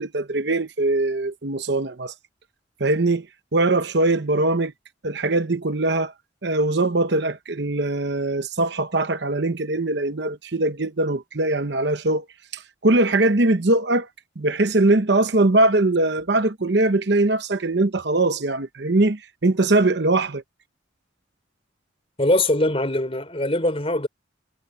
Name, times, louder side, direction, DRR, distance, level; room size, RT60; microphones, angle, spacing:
voice 1, 0.0-2.1 2.8-3.3 3.5-4.7 5.0-6.1 6.4-12.2 12.5-14.1 14.4-20.4, right 2 dB, 60° right, 0.9 m, -21 dB
voice 2, 22.2-24.1, left 1 dB, 30° left, 4.3 m, -22 dB
head